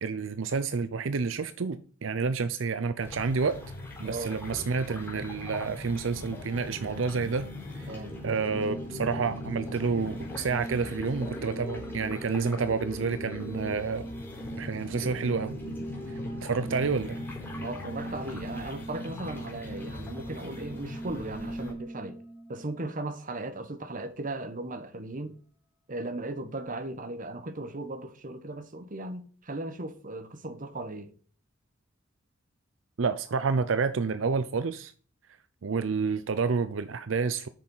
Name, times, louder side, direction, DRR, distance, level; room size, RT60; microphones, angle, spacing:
voice 1, 0.0-3.6 4.0-7.5 7.7-7.9 8.2-14.0 14.6-15.6 16.1-17.2 33.0-34.9 35.6-37.5, right 5 dB, 75° right, 0.6 m, -29 dB
sound 1, 3.0-21.7, left 1 dB, 10° left, 4.0 m, -40 dB
voice 2, 4.0-4.4 7.9-8.2 16.1-16.2 17.6-22.2 22.5-25.4 25.9-31.1, right 2 dB, 45° right, 1.1 m, -37 dB
sound 2, 8.5-22.9, right 1 dB, 10° right, 2.1 m, -41 dB
8.5 x 6.5 x 5.5 m
head